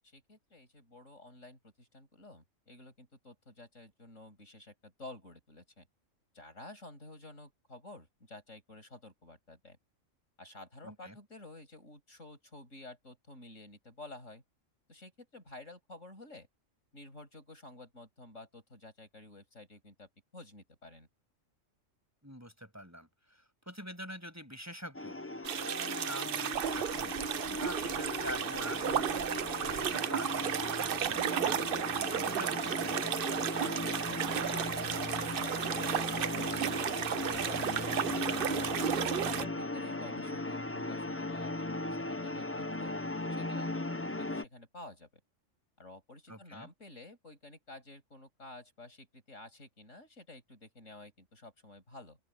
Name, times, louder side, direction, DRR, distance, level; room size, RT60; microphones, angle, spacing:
voice 1, 0.0-5.9 6.3-9.8 10.4-14.4 14.9-16.5 16.9-21.1 33.6-38.5 39.1-42.9 43.3-43.7 44.2-45.1 45.8-52.2, left 2 dB, 70° left, 7.7 m, -51 dB
voice 2, 10.8-11.2 22.2-25.2 25.5-27.2 27.5-31.6 31.9-33.0 46.3-46.7, equal, 10° right, 7.7 m, -45 dB
sound 1, 24.9-44.4, left 2 dB, 15° left, 0.5 m, -37 dB
sound 2, 25.4-39.4, right 9 dB, 55° right, 0.7 m, -33 dB
open air
omnidirectional pair, 1.3 m